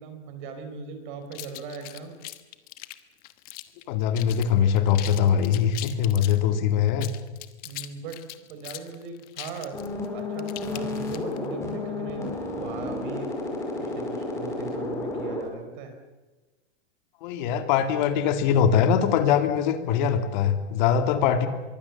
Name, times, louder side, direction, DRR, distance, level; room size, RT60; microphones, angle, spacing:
voice 1, 0.0-2.2 7.6-8.2 8.5-9.8 10.1-13.3 13.8-15.9, right 5 dB, 45° right, 7 dB, 4.6 m, -39 dB
sound 1, 1.3-3.8 4.1-4.5 4.8-6.4 6.9-11.5, left 17 dB, 25° left, 1.2 m, -40 dB
voice 2, 3.9-7.1 17.2-21.5, left 8 dB, 40° left, 8 dB, 2.5 m, -22 dB
sound 2, 9.7-15.4, left 2 dB, 10° left, 4.7 m, -32 dB
25.0 x 23.0 x 7.2 m, 1.2 s
supercardioid pair, 170°, 34 cm